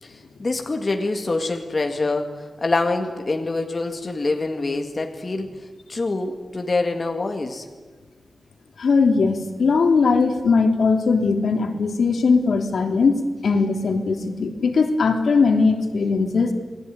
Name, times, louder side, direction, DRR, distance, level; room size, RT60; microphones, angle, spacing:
voice 1, 0.0-7.7, left 3 dB, 30° left, 4 dB, 2.1 m, -25 dB
voice 2, 8.8-16.5, left 4 dB, 80° left, 4 dB, 3.1 m, -19 dB
29.5 x 20.5 x 9.5 m, 1.4 s
wide cardioid pair, 175°, 0 cm